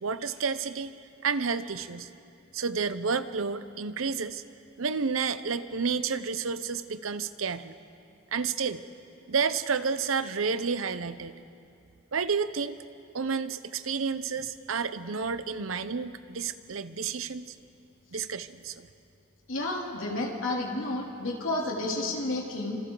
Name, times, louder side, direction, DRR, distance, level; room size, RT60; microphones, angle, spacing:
voice 1, 0.0-0.9 1.2-2.1 2.5-4.4 4.8-7.7 8.3-8.8 9.3-11.3 12.1-12.8 13.1-17.5 18.1-18.9, right 5 dB, 90° right, 12 dB, 0.8 m, -30 dB
voice 2, 19.5-22.8, left 2 dB, 75° left, -1 dB, 3.2 m, -31 dB
30.0 x 26.0 x 3.9 m, 2.6 s
head